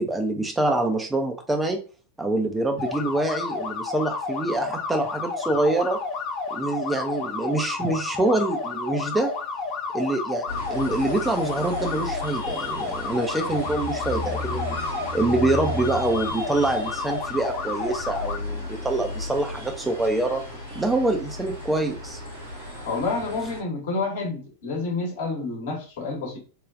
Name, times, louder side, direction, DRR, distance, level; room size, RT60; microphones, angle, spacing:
voice 1, 0.0-1.8 2.2-6.0 6.5-9.3 9.9-14.8 15.1-20.4 20.8-22.2, right 2 dB, 10° right, 3 dB, 0.4 m, -25 dB
sound 1, 2.8-18.4, left 4 dB, 40° left, 0.6 m, -31 dB
sound 2, 10.5-23.6, left 1 dB, 85° right, 1.6 m, -34 dB
voice 2, 22.8-26.4, left 3 dB, 55° left, 0 dB, 1.1 m, -29 dB
3.3 x 2.2 x 2.4 m, 0.36 s
figure-of-eight pair, 90°, 0 cm